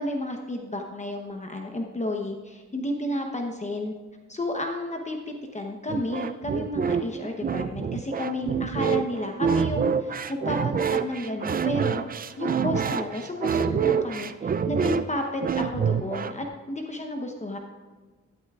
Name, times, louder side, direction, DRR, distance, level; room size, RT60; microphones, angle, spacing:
voice 1, 0.0-3.9 4.3-12.0 12.4-17.6, left 1 dB, 25° left, 2 dB, 0.8 m, -31 dB
sound 1, 5.9-16.5, right 7 dB, 30° right, 0.4 m, -27 dB
12.5 x 11.5 x 2.4 m, 1.4 s
cardioid pair, 110°, 30 cm